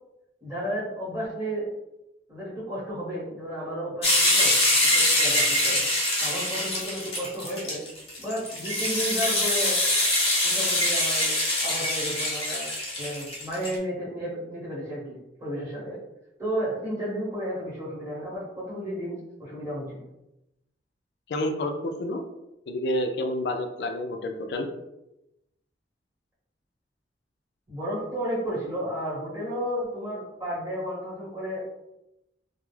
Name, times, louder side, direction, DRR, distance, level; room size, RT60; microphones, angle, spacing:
voice 1, 0.4-1.7 2.3-5.8 6.2-7.8 8.2-9.8 10.4-11.3 11.6-12.7 13.0-16.0 16.4-20.1 27.7-31.7, equal, 15° right, -9 dB, 1.0 m, -33 dB
sound 1, 4.0-13.7, left 1 dB, 35° left, 0.7 m, -24 dB
voice 2, 21.3-22.2 22.7-24.7, left 1 dB, 70° left, 5 dB, 0.3 m, -29 dB
2.2 x 2.0 x 3.1 m, 0.90 s
head